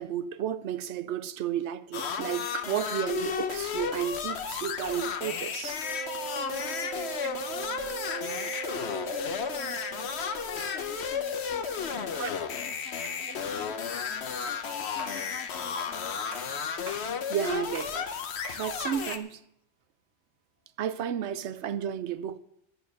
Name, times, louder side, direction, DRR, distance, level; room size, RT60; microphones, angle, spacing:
voice 1, 0.0-5.8 12.1-12.3 17.3-18.1 18.6-19.4 20.8-22.4, right 9 dB, 75° right, 0.9 m, -32 dB
sound 1, 1.9-19.2, left 7 dB, 70° left, 1.1 m, -33 dB
Wind instrument woodwind instrument, 5.8-12.5, right 16 dB, 40° right, 0.6 m, -41 dB
voice 2, 5.9-16.4, left 10 dB, 90° left, 0.9 m, -48 dB
sound 2, 15.0-15.3 15.8-16.0 16.3-17.1 17.7-18.0 18.4-18.7, right 1 dB, 55° right, 2.7 m, -44 dB
11.5 x 9.4 x 6.4 m
omnidirectional pair, 1.2 m